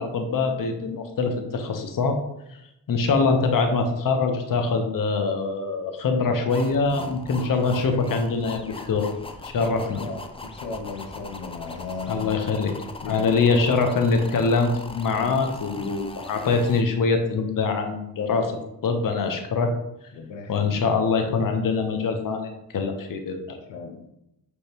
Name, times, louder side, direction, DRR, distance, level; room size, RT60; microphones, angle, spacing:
voice 1, 0.0-2.2 2.9-9.1 9.4-10.0 12.1-12.7 13.0-18.6 18.8-19.7 20.5-23.6, left 4 dB, 50° left, 5 dB, 0.8 m, -24 dB
sound 1, 6.5-16.8, left 3 dB, 15° left, 0.5 m, -40 dB
voice 2, 10.0-12.4 12.7-13.8 15.1-15.3 15.7-15.9 20.1-20.7 23.7-24.1, left 4 dB, 80° left, 2 dB, 0.7 m, -36 dB
5.2 x 3.1 x 2.9 m, 0.84 s
supercardioid pair, 45°, 44 cm